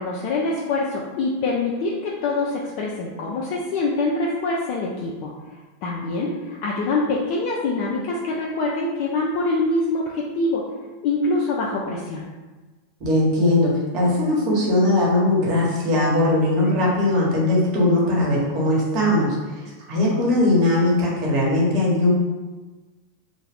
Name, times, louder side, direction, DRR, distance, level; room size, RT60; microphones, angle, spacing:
voice 1, 0.0-5.3 5.8-10.6 11.0-12.3, left 2 dB, 55° left, -3 dB, 0.4 m, -24 dB
voice 2, 13.0-19.4 19.9-22.1, left 1 dB, 45° right, -4 dB, 1.0 m, -19 dB
2.3 x 2.1 x 3.4 m, 1.3 s
hypercardioid pair, 90°, 0 cm